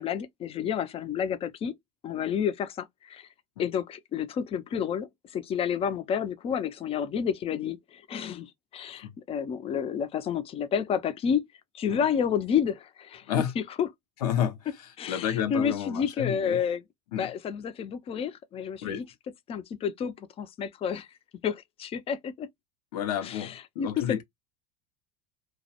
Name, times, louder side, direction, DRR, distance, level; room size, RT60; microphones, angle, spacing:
voice 1, 0.0-1.7 2.0-3.3 3.6-11.5 11.7-13.3 13.8-13.9 15.0-16.8 17.2-19.0 19.5-21.1 21.4-22.5 23.2-23.5 23.8-24.2, left 7 dB, 30° left, 0.4 m, -30 dB
voice 2, 14.2-16.6 17.1-17.3 18.8-19.1 22.9-24.2, left 9 dB, 85° left, 0.6 m, -31 dB
2.3 x 2.1 x 2.7 m
supercardioid pair, 100°, 19 cm